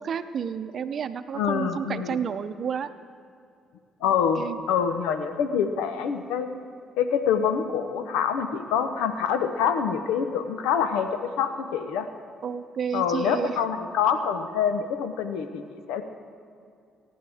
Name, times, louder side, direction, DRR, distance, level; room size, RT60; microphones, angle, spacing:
voice 1, 0.0-2.9 4.0-4.6 12.4-13.6, right 7 dB, 55° right, 11 dB, 0.7 m, -31 dB
voice 2, 1.3-2.2 4.0-6.5 7.0-11.1 11.4-12.1 12.9-16.0, left 7 dB, 85° left, 9 dB, 0.8 m, -26 dB
23.5 x 9.5 x 3.5 m, 2.5 s
supercardioid pair, 65°, 0 cm